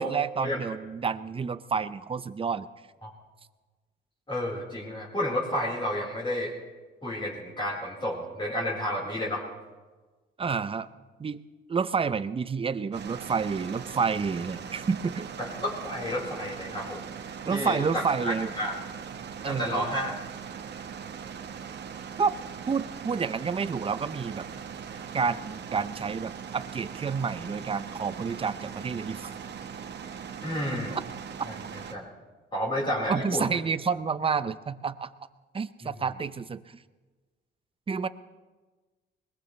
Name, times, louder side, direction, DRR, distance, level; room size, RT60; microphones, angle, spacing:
voice 1, 0.0-2.7 10.4-10.9 11.2-11.4 11.7-15.3 17.5-18.6 19.4-20.0 22.2-22.4 22.7-24.5 25.1-29.3 30.9-31.0 33.1-35.1 35.5-36.8 37.9-38.1, right 5 dB, 25° right, 14 dB, 0.7 m, -29 dB
voice 2, 4.3-6.5 7.0-9.4 15.4-17.1 17.5-18.7 19.4-20.1 30.4-31.0 31.5-31.6 31.9-32.1 32.5-33.4, left 1 dB, 25° left, -5 dB, 4.5 m, -31 dB
sound 1, 12.9-32.0, right 7 dB, 60° right, 1.4 m, -40 dB
21.5 x 20.0 x 3.3 m, 1.3 s
cardioid pair, 90°, 20 cm